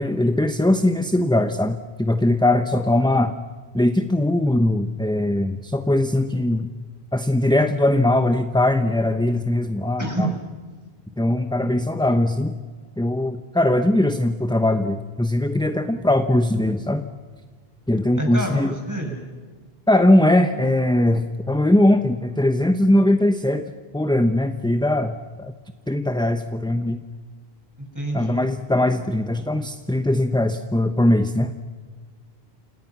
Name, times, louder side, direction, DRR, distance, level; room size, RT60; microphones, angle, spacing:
voice 1, 0.0-3.3 3.7-6.7 7.1-10.3 11.2-12.6 13.0-17.0 17.9-18.7 19.9-25.5 25.9-27.0 28.1-31.5, left 1 dB, 5° left, 8 dB, 0.8 m, -20 dB
voice 2, 18.2-19.2 27.8-28.4, right 1 dB, 15° right, 2 dB, 6.2 m, -27 dB
29.0 x 28.0 x 6.0 m, 1.5 s
omnidirectional pair, 1.1 m